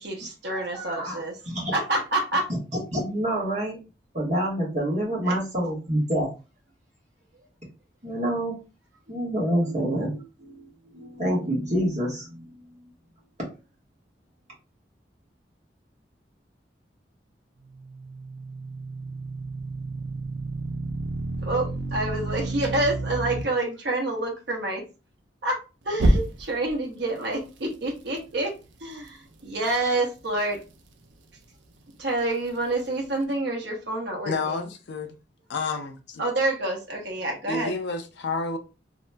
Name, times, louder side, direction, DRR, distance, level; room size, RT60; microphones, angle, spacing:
voice 1, 0.0-1.4 1.7-2.5 5.3-5.4 21.4-24.8 25.4-25.6 25.8-28.5 28.8-30.6 32.0-34.6 36.2-37.7, right 2 dB, 70° right, 1.0 m, -28 dB
voice 2, 2.9-3.8 4.1-6.3 8.0-8.5 9.1-10.7 10.9-12.4, right 1 dB, 40° right, 1.4 m, -27 dB
sound 1, 17.6-23.4 25.9-26.7, right 1 dB, 90° right, 0.5 m, -29 dB
voice 3, 34.2-35.2 35.5-36.3 37.5-38.6, left 4 dB, 70° left, 0.5 m, -30 dB
2.9 x 2.8 x 2.2 m
head